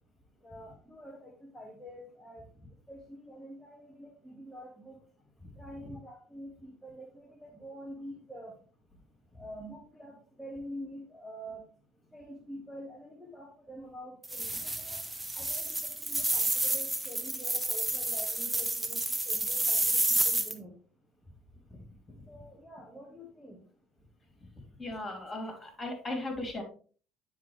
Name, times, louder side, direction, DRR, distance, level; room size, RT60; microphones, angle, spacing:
voice 1, 0.4-2.5 2.9-5.0 5.6-8.5 9.4-11.6 12.1-15.0 15.3-20.7 22.3-23.6, equal, ahead, -3 dB, 1.7 m, -46 dB
sound 1, 14.2-20.5, right 2 dB, 15° right, 1.0 m, -30 dB
voice 2, 24.8-26.6, left 2 dB, 25° left, 3 dB, 2.8 m, -37 dB
9.4 x 4.9 x 3.2 m, 0.41 s
hypercardioid pair, 60°, 0 cm